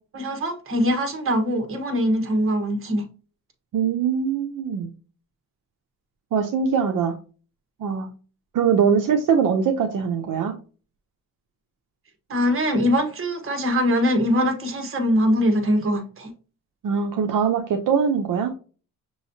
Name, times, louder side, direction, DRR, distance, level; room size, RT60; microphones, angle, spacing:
voice 1, 0.1-3.0 12.3-16.3, equal, 40° right, 1.2 m, -22 dB
voice 2, 3.7-4.9 6.3-7.1 7.8-8.1 8.5-10.5 16.8-18.5, right 6 dB, 65° right, 0.7 m, -22 dB
6.3 x 3.1 x 2.7 m
wide cardioid pair, 140°, 35 cm